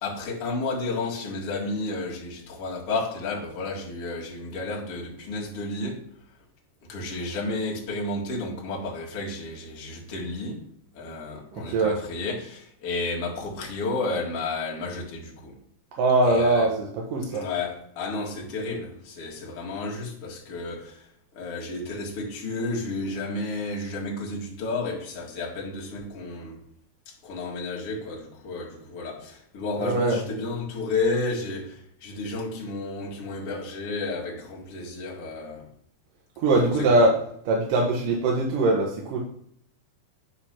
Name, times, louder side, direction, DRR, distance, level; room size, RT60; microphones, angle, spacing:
voice 1, 0.0-6.1 6.9-10.7 10.9-15.6 16.2-16.7 17.3-21.1 21.3-26.6 27.1-35.7 36.6-36.9, left 3 dB, 45° left, 2.3 m, -32 dB
voice 2, 11.5-12.0 16.0-17.5 29.8-30.2 36.4-37.1 37.5-39.2, right 2 dB, 65° right, 2.5 m, -22 dB
10.0 x 3.9 x 5.8 m
omnidirectional pair, 4.6 m